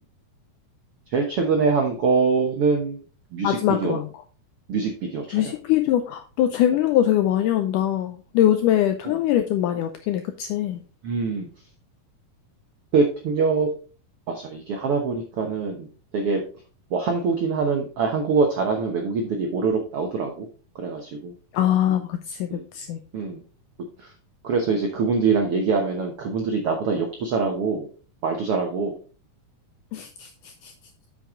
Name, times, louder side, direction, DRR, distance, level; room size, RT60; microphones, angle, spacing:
voice 1, 1.1-3.0 3.3-4.0 4.7-5.5 9.0-9.2 11.0-11.5 12.9-13.7 14.3-15.9 16.1-16.4 16.9-20.5 20.7-21.3 22.5-22.7 23.1-23.4 24.0-24.1 24.4-27.9 28.2-29.0, right 4 dB, 85° right, 2 dB, 1.2 m, -24 dB
voice 2, 3.4-4.1 5.3-10.8 21.5-23.0 29.9-30.7, left 11 dB, 85° left, 8 dB, 1.8 m, -23 dB
8.1 x 6.5 x 3.7 m, 0.37 s
omnidirectional pair, 4.3 m